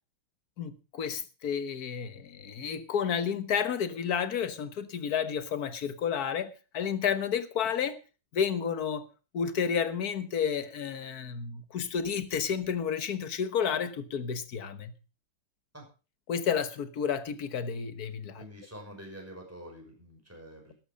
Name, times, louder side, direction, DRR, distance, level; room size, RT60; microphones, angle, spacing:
voice 1, 0.6-8.0 8.3-9.1 9.3-14.9 16.3-18.4, left 7 dB, 50° left, 12 dB, 1.5 m, -31 dB
voice 2, 18.4-20.7, equal, 5° right, 1 dB, 5.8 m, -46 dB
13.0 x 11.5 x 5.1 m, 0.33 s
omnidirectional pair, 2.3 m